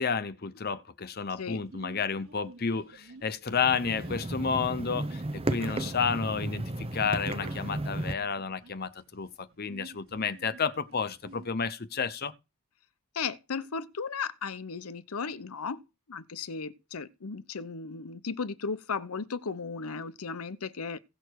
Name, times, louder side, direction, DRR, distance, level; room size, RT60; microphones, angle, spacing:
voice 1, 0.0-12.3, left 5 dB, 45° left, 0.7 m, -31 dB
Sneeze, 1.5-11.5, right 3 dB, 65° right, 1.5 m, -52 dB
sound 1, 3.5-8.1, right 2 dB, 25° right, 0.7 m, -34 dB
voice 2, 13.1-15.8 16.1-21.0, left 5 dB, 85° left, 0.8 m, -35 dB
16.5 x 6.7 x 4.7 m
head